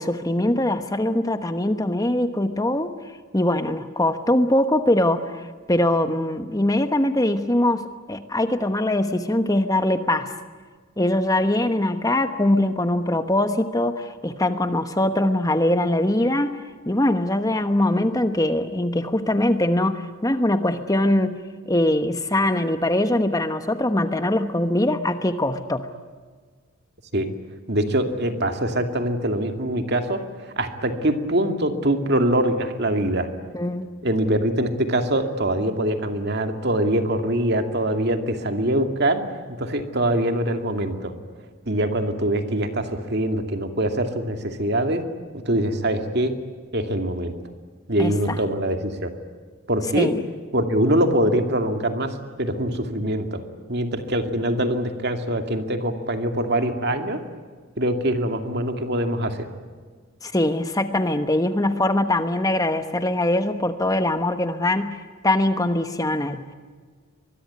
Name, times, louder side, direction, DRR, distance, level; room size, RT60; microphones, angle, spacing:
voice 1, 0.0-2.9 3.3-10.3 11.0-16.6 16.9-21.4 21.7-25.9 33.5-33.9 48.0-48.4 49.9-50.2 60.2-66.5, left 1 dB, 15° left, 9 dB, 1.1 m, -22 dB
voice 2, 27.7-30.2 30.6-33.3 34.0-39.2 39.6-41.1 41.7-45.0 45.3-46.3 46.7-47.3 47.9-49.1 49.7-50.1 50.5-53.4 53.7-57.2 57.8-59.5, right 1 dB, 50° right, 6 dB, 2.4 m, -23 dB
24.0 x 21.5 x 9.6 m, 1.5 s
head